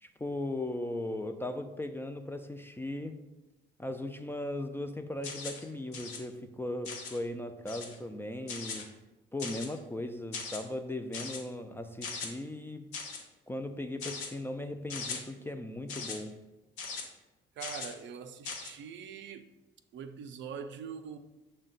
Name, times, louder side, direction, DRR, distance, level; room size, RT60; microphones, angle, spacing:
voice 1, 0.0-3.2 3.8-9.0 9.3-12.9 13.5-16.4, left 1 dB, 10° left, 0.3 m, -38 dB
sound 1, 5.2-5.6 5.9-6.2 6.8-7.2 7.7-8.0 8.5-8.8 9.4-9.8 10.3-10.6 11.1-11.4 12.0-12.3 12.9-13.2 14.0-14.3 14.9-15.2 15.9-16.2 16.8-17.0 17.6-17.9 18.4-18.7, left 5 dB, 90° left, 0.7 m, -39 dB
voice 2, 17.6-19.5 19.9-21.2, right 7 dB, 65° right, 0.4 m, -43 dB
6.1 x 2.1 x 3.9 m
supercardioid pair, 65°, 21 cm